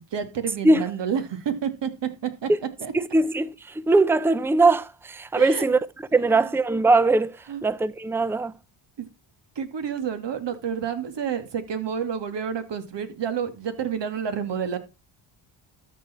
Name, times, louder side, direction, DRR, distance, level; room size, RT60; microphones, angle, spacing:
voice 1, 0.0-2.5 2.8-2.9 5.3-5.6 6.3-6.5 7.5-7.6 9.0-9.1 9.6-14.8, right 7 dB, 60° right, 2.4 m, -29 dB
voice 2, 2.9-5.8 6.1-8.5, right 2 dB, 5° right, 0.6 m, -21 dB
13.0 x 6.7 x 4.3 m
cardioid pair, 75°, 47 cm